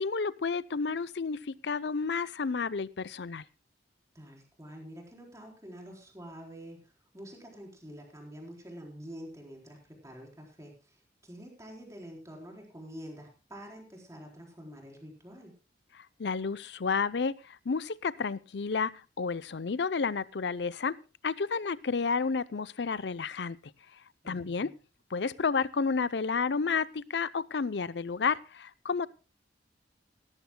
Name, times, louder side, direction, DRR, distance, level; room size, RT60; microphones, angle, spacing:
voice 1, 0.0-3.4 16.0-21.0 21.2-23.6 24.2-24.7 25.1-29.1, left 5 dB, 70° left, 18 dB, 0.6 m, -31 dB
voice 2, 4.1-15.5 24.2-24.7, equal, 20° right, 0 dB, 4.1 m, -47 dB
17.5 x 14.0 x 2.2 m, 0.31 s
head